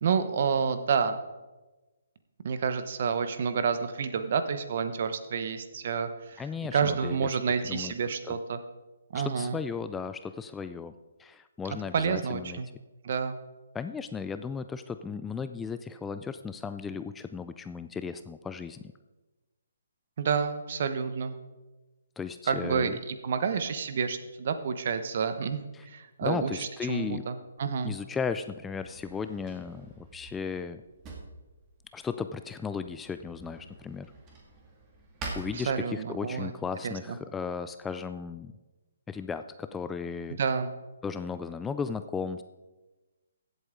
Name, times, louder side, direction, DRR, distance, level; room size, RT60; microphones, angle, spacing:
voice 1, 0.0-1.2 2.4-6.4 6.7-8.6 9.1-9.6 11.9-12.7 13.0-13.4 20.2-21.4 22.5-27.9 35.5-36.5 36.8-37.2 40.4-40.7, right 6 dB, 50° right, 10 dB, 1.0 m, -29 dB
voice 2, 6.4-7.3 7.7-7.9 8.3-8.4 9.1-10.9 11.2-12.6 13.7-18.8 22.2-23.0 25.7-25.8 26.2-27.3 27.8-30.8 31.9-34.1 35.3-38.5 39.1-40.4 41.0-42.4, left 5 dB, 10° left, 10 dB, 0.3 m, -35 dB
Drawer open or close, 27.6-36.3, right 3 dB, 20° right, 2.2 m, -47 dB
15.5 x 8.0 x 3.8 m, 1.1 s
figure-of-eight pair, 140°, 0 cm